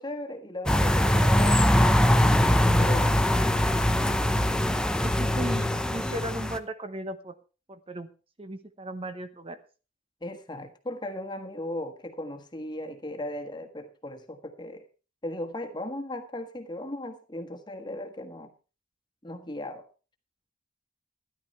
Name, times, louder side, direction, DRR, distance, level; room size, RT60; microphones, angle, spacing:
voice 1, 0.0-3.2 10.2-14.8 15.2-18.5 19.2-19.8, left 1 dB, 25° left, 4 dB, 1.5 m, -37 dB
sound 1, 0.7-6.6, left 1 dB, 5° left, 0.7 m, -22 dB
voice 2, 5.0-7.3 7.7-8.1 8.4-9.6, right 1 dB, 30° right, 10 dB, 0.9 m, -36 dB
13.5 x 10.5 x 4.3 m, 0.34 s
head